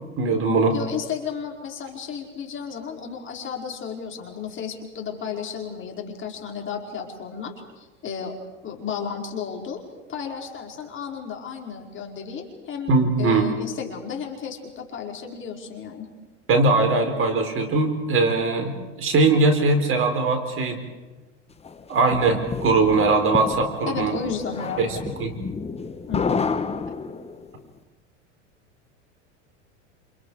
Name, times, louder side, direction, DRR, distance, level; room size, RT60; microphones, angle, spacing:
voice 1, 0.2-0.7 12.9-13.5 16.5-18.7 19.0-20.8 21.9-24.1 24.8-25.3, right 3 dB, 35° right, 5 dB, 4.7 m, -20 dB
voice 2, 0.7-8.4 8.6-9.8 10.1-16.1 23.9-25.0 26.1-26.4, left 7 dB, 30° left, 1 dB, 5.0 m, -33 dB
sound 1, 21.6-27.5, left 5 dB, 15° left, 1.5 m, -30 dB
28.5 x 28.5 x 5.0 m, 1.2 s
hypercardioid pair, 100°, 37 cm